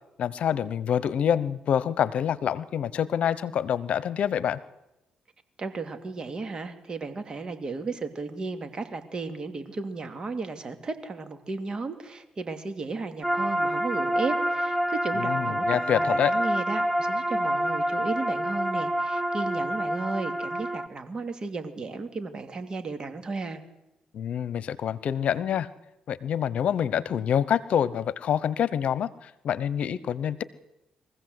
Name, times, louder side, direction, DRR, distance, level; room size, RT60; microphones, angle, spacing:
voice 1, 0.2-4.6 15.1-16.3 24.1-25.7 26.1-30.4, left 9 dB, 65° left, 18 dB, 1.0 m, -26 dB
voice 2, 5.6-23.6, right 3 dB, 40° right, 8 dB, 2.5 m, -34 dB
sound 1, 13.2-20.9, right 1 dB, ahead, 1.0 m, -27 dB
23.0 x 15.5 x 7.9 m, 0.92 s
cardioid pair, 80°, 2 cm